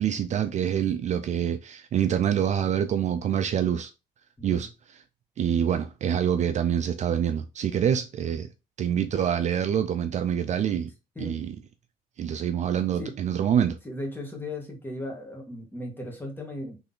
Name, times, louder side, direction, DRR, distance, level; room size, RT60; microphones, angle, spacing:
voice 1, 0.0-3.9 4.4-4.7 5.4-8.5 8.8-10.9 11.2-11.5 12.2-13.8, right 9 dB, 45° right, 0.4 m, -26 dB
voice 2, 4.4-4.7 7.8-8.0 11.2-11.4 13.0-13.1 13.8-16.8, left 1 dB, 10° left, 1.7 m, -37 dB
4.0 x 3.2 x 3.8 m
cardioid pair, 110°, 17 cm